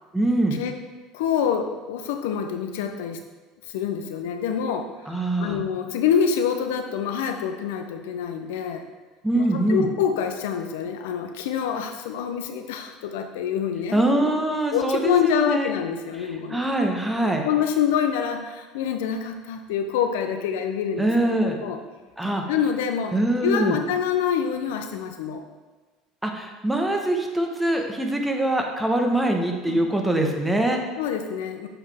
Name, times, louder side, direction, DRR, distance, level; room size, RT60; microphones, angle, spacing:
voice 1, 0.1-0.6 5.1-5.6 9.2-9.9 13.9-15.7 16.5-17.4 21.0-21.6 22.2-22.4 23.1-23.8 26.2-30.8, right 1 dB, 10° right, 2 dB, 1.0 m, -23 dB
voice 2, 1.1-3.2 3.7-8.8 9.4-14.3 14.7-16.7 17.2-21.8 22.5-23.2 23.4-25.4 29.7-29.9 31.0-31.7, left 7 dB, 85° left, 6 dB, 0.5 m, -26 dB
7.7 x 4.1 x 3.5 m, 1.3 s
supercardioid pair, 90°, 0 cm